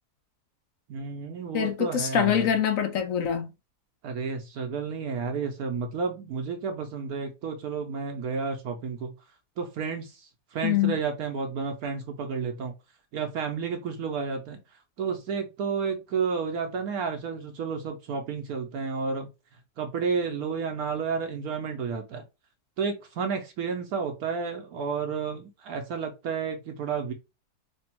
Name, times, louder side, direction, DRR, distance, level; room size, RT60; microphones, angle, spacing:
voice 1, 0.9-2.5 4.0-9.1 9.6-12.7 13.1-14.6 15.0-19.3 19.8-22.2 22.8-27.1, right 5 dB, 70° right, 1.0 m, -31 dB
voice 2, 1.5-3.5 10.6-11.0, left 9 dB, 65° left, 0.9 m, -24 dB
3.3 x 2.2 x 4.3 m
omnidirectional pair, 1.7 m